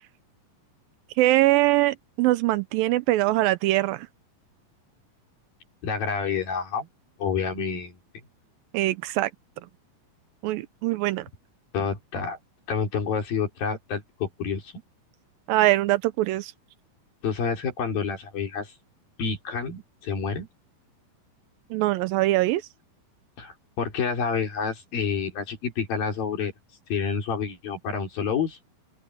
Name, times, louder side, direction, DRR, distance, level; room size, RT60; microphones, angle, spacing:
voice 1, 1.2-4.1 8.7-9.3 10.4-11.3 15.5-16.5 21.7-22.6, right 17 dB, 85° right, 2.4 m, -22 dB
voice 2, 5.8-6.9 7.2-8.0 11.7-12.4 12.7-14.7 17.2-18.7 19.2-20.5 23.4-26.5 26.9-28.6, left 6 dB, 75° left, 5.5 m, -28 dB
open air
omnidirectional pair, 4.1 m